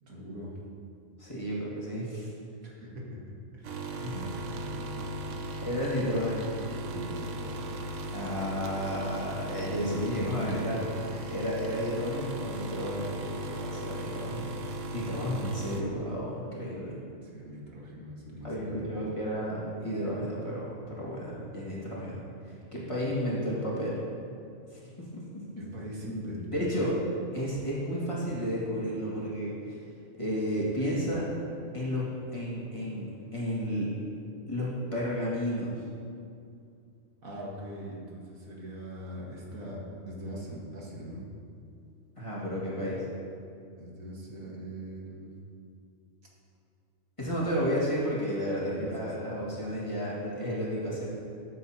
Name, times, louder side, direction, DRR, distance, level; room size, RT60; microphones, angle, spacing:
voice 1, 0.0-0.6 2.6-3.2 3.5-5.6 6.8-8.2 9.6-10.9 15.0-15.4 17.2-18.9 25.6-26.9 37.2-41.2 43.8-45.3 48.6-49.3 49.6-50.2, equal, 80° right, -4 dB, 2.1 m, -41 dB
voice 2, 1.2-2.3 4.0-4.2 5.6-6.5 8.1-10.8 11.3-14.6 14.9-17.0 18.4-24.0 24.7-25.5 26.5-26.9 27.3-29.8 30.2-31.3 31.7-33.9 34.5-35.8 42.2-43.0 47.2-51.1, equal, 20° left, -7 dB, 2.0 m, -32 dB
sound 1, 3.6-15.8, right 1 dB, 65° right, 1.1 m, -37 dB
13.5 x 8.2 x 2.9 m, 2.5 s
omnidirectional pair, 1.4 m